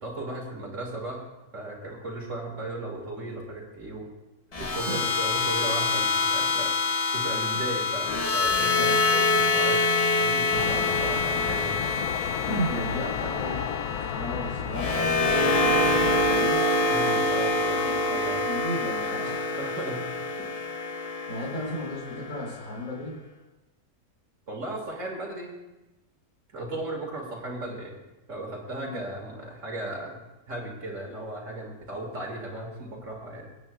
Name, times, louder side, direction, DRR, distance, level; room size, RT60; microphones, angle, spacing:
voice 1, 0.0-1.2 1.5-4.1 4.6-6.7 7.1-12.0 16.9-18.4 19.6-20.0 20.4-20.5 24.5-25.5 26.5-28.0 28.3-30.2 30.5-33.5, right 1 dB, 55° right, -1 dB, 2.5 m, -36 dB
sound 1, 4.5-22.7, left 3 dB, 35° left, 0.7 m, -26 dB
voice 2, 4.7-5.1 8.8-9.0 12.4-13.6 14.0-16.6 17.7-19.4 21.3-23.2 28.8-29.0, equal, 65° left, -4 dB, 4.8 m, -34 dB
sound 2, 10.5-16.4, left 9 dB, 85° left, 1.1 m, -33 dB
26.0 x 9.0 x 2.4 m, 1.0 s
omnidirectional pair, 1.5 m